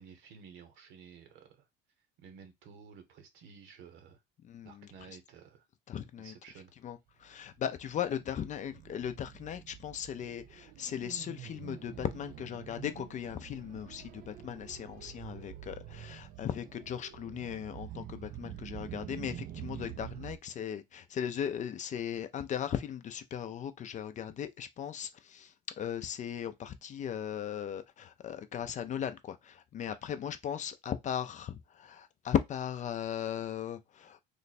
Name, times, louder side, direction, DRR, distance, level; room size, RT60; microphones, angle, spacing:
voice 1, 0.0-1.7 2.2-4.2 4.6-5.6 6.2-6.7 29.9-30.0, right 6 dB, 75° right, 1.1 m, -53 dB
voice 2, 4.4-4.9 5.9-6.3 6.8-34.2, left 9 dB, 40° left, 0.5 m, -37 dB
sound 1, 7.3-20.4, right 11 dB, 45° right, 0.4 m, -47 dB
3.1 x 2.2 x 4.1 m
supercardioid pair, 100°, 20 cm